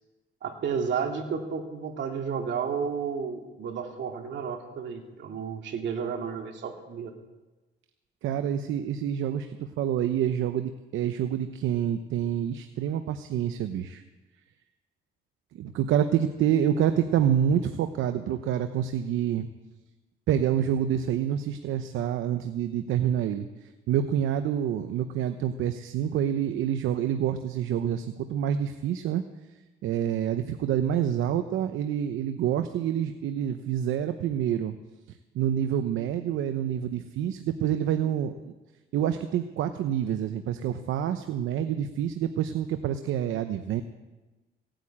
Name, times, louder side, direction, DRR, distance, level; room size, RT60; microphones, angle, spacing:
voice 1, 0.4-7.1, right 6 dB, 65° right, 3 dB, 2.5 m, -32 dB
voice 2, 8.2-14.0 15.6-19.5 20.3-23.5 23.9-29.2 29.8-34.7 35.3-38.5 38.9-43.8, right 9 dB, 80° right, 8 dB, 0.8 m, -27 dB
17.0 x 9.0 x 8.7 m, 1.1 s
cardioid pair, 90°, 20 cm